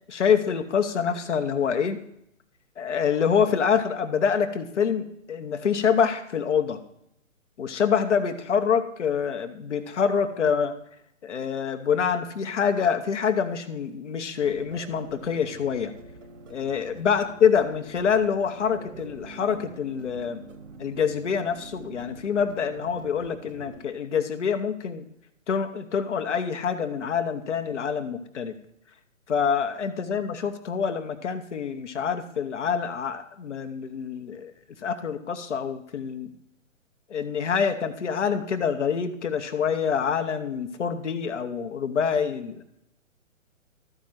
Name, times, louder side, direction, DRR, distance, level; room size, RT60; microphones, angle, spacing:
voice 1, 0.1-2.0 2.8-6.8 7.6-10.7 11.2-15.9 16.5-20.4 20.8-25.0 25.5-28.5 29.3-34.5 34.8-36.3 37.1-42.6, left 7 dB, 60° left, 8 dB, 1.2 m, -26 dB
sound 1, 14.3-23.8, right 2 dB, 65° right, 1.4 m, -45 dB
13.5 x 5.2 x 5.9 m, 0.76 s
figure-of-eight pair, 130°, 40 cm